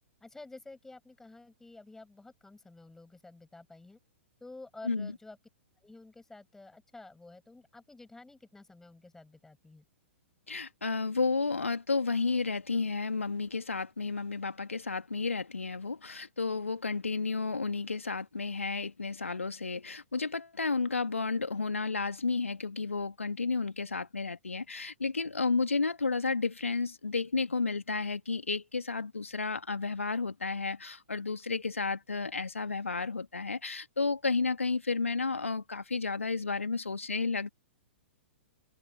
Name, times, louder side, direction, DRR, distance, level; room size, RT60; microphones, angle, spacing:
voice 1, 0.2-4.0 4.4-5.4 5.8-9.8, left 2 dB, 5° left, 6.4 m, -51 dB
voice 2, 10.5-37.5, left 4 dB, 80° left, 1.9 m, -32 dB
open air
figure-of-eight pair, 110°, 7 cm